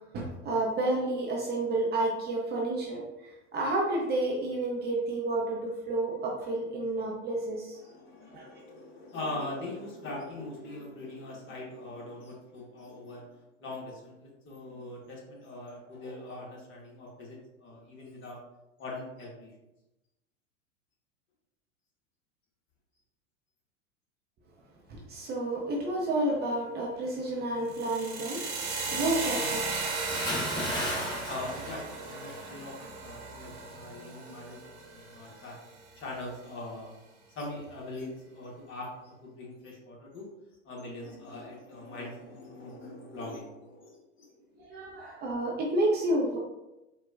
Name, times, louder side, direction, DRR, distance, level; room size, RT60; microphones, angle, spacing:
voice 1, 0.1-3.0 3.5-7.8 8.3-8.5 24.9-30.1 35.3-35.4 44.7-46.4, right 2 dB, 25° right, -2 dB, 0.6 m, -30 dB
voice 2, 7.5-13.3 13.6-18.4 18.8-19.5 31.3-35.6 36.0-37.0 37.3-40.2 40.6-44.9, left 2 dB, 30° left, -3 dB, 1.1 m, -42 dB
sound 1, 27.6-35.7, right 3 dB, 60° right, 0.9 m, -36 dB
Bathtub (filling or washing) / Splash splatter, 30.1-32.5 32.8-33.1, left 1 dB, 15° left, 1.3 m, -34 dB
4.2 x 2.2 x 2.4 m, 0.98 s
hypercardioid pair, 90°, 37 cm